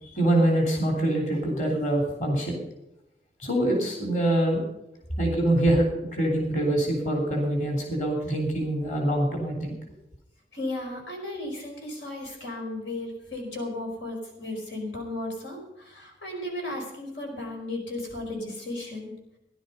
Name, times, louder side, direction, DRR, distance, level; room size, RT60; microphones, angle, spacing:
voice 1, 0.0-2.6 3.4-4.6 5.2-9.8, right 1 dB, 45° left, 1 dB, 3.3 m, -25 dB
voice 2, 10.5-19.1, left 1 dB, 90° left, 1 dB, 4.9 m, -35 dB
16.0 x 11.5 x 5.6 m, 0.88 s
head